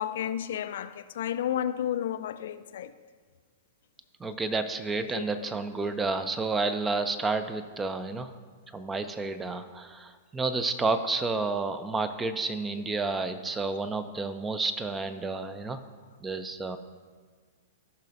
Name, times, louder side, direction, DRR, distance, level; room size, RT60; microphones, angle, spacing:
voice 1, 0.0-2.9 5.1-5.2 5.8-5.9, left 10 dB, 60° left, 0.3 m, -32 dB
voice 2, 4.2-8.3 8.7-15.8 16.2-16.8, right 3 dB, 15° right, 0.5 m, -30 dB
14.5 x 5.7 x 2.6 m
figure-of-eight pair, 105°, 0 cm